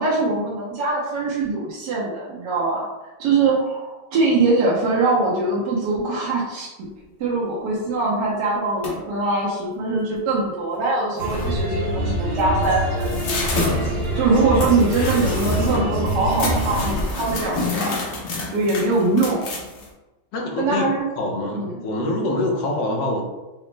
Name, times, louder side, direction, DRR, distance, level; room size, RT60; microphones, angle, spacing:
voice 1, 0.0-2.9 3.2-6.9 7.2-13.6 14.1-18.0 18.5-19.5 20.6-21.1 21.5-21.8, right 3 dB, 70° right, -7 dB, 1.3 m, -22 dB
sound 1, 8.8-9.2 10.8-10.9 11.1-11.6 12.4-19.9, left 3 dB, 60° left, 0.9 m, -29 dB
sound 2, 11.2-17.0, right 1 dB, 40° right, 0.6 m, -25 dB
voice 2, 20.3-20.9 21.2-23.2, left 1 dB, 80° left, 1 dB, 1.4 m, -25 dB
4.9 x 2.1 x 3.2 m, 1.1 s
omnidirectional pair, 2.0 m